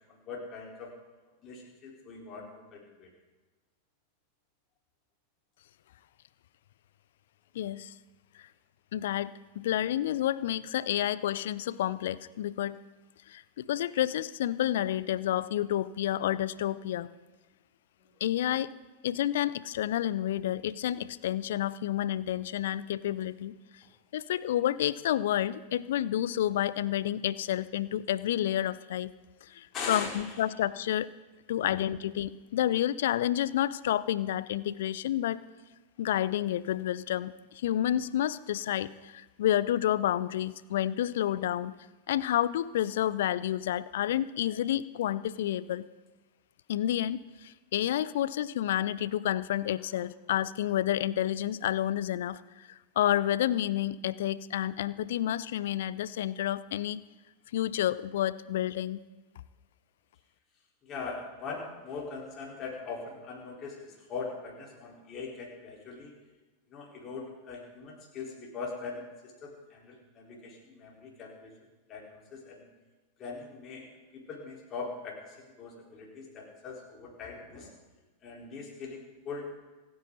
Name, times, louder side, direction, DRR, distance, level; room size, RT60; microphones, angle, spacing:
voice 1, 0.1-0.9 1.4-3.1 29.7-30.4 31.6-31.8 60.8-66.2 66.7-71.5 71.9-72.7 73.2-77.7 78.2-79.6, left 4 dB, 30° left, -2 dB, 4.5 m, -41 dB
voice 2, 7.5-7.9 8.9-12.8 13.3-17.1 18.2-18.7 19.0-23.5 24.1-29.1 29.4-31.1 31.5-35.4 36.0-41.7 42.1-45.8 46.7-52.7 53.0-57.0 57.5-59.0, left 12 dB, 55° left, 18 dB, 0.5 m, -30 dB
28.0 x 9.6 x 4.1 m, 1.2 s
figure-of-eight pair, 90°, 0 cm